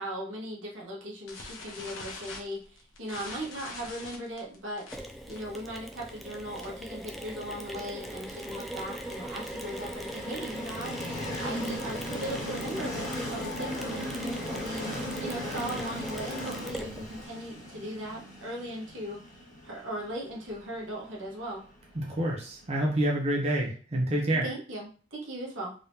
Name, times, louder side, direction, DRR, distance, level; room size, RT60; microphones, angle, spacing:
voice 1, 0.0-14.9 15.2-19.2 19.6-21.7 24.4-25.7, right 1 dB, 80° right, -3 dB, 1.3 m, -38 dB
sound 1, 1.3-6.9 7.2-7.4 7.7-7.8 8.1-8.4 8.9-10.4, left 3 dB, 90° left, 1.0 m, -44 dB
Mechanisms, 4.9-17.2, right 1 dB, ahead, 0.3 m, -40 dB
Train, 7.3-23.1, left 1 dB, 40° left, 1.6 m, -39 dB
voice 2, 21.9-24.5, right 1 dB, 35° right, -1 dB, 0.7 m, -28 dB
3.7 x 3.5 x 2.8 m, 0.40 s
head